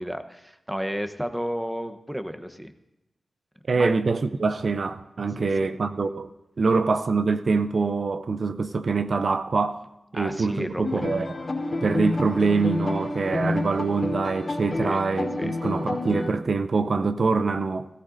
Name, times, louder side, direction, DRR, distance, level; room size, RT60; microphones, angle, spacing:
voice 1, 0.0-2.7 3.7-3.9 5.4-5.7 10.1-11.0 14.8-15.0 15.4-15.5, equal, 5° right, 0.9 m, -32 dB
voice 2, 3.7-6.3 6.6-9.8 10.1-11.3 11.8-17.9, right 4 dB, 65° right, 0.5 m, -24 dB
sound 1, 10.8-16.3, left 2 dB, 55° left, 2.7 m, -29 dB
17.5 x 15.0 x 2.6 m
cardioid pair, 55°, 0 cm